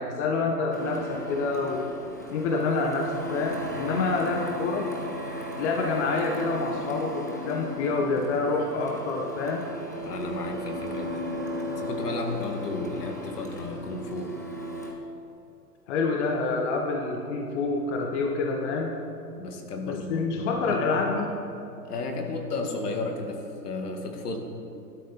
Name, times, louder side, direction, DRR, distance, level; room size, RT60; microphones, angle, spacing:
voice 1, 0.0-1.8 2.3-4.9 5.6-9.7 15.9-19.0 19.9-21.3, left 3 dB, 40° left, 2 dB, 1.7 m, -27 dB
Printer, 0.7-14.9, equal, 15° left, 0.3 m, -36 dB
voice 2, 10.0-11.2 11.8-14.3 19.4-20.8 21.8-24.4, left 2 dB, 65° left, 3 dB, 2.4 m, -33 dB
19.5 x 12.0 x 4.3 m, 2.6 s
figure-of-eight pair, 120°, 50 cm